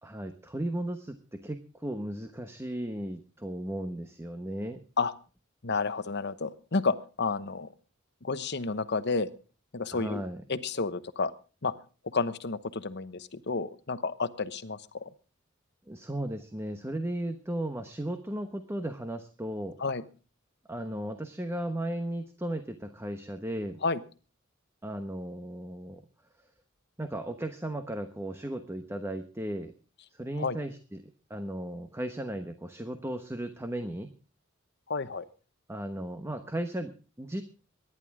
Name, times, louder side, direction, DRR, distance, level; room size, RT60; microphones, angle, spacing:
voice 1, 0.0-4.8 9.9-10.4 15.9-19.8 20.7-23.8 24.8-26.0 27.0-29.7 30.2-31.0 31.3-34.1 35.7-37.4, right 1 dB, 15° right, 8 dB, 1.1 m, -35 dB
voice 2, 5.6-7.7 8.2-9.3 9.7-10.2 10.5-11.3 11.6-11.7 12.1-15.1 19.8-20.0 23.8-24.0 30.4-30.6 34.9-35.3, left 4 dB, 55° left, 12 dB, 1.0 m, -31 dB
23.5 x 11.0 x 3.6 m, 0.36 s
head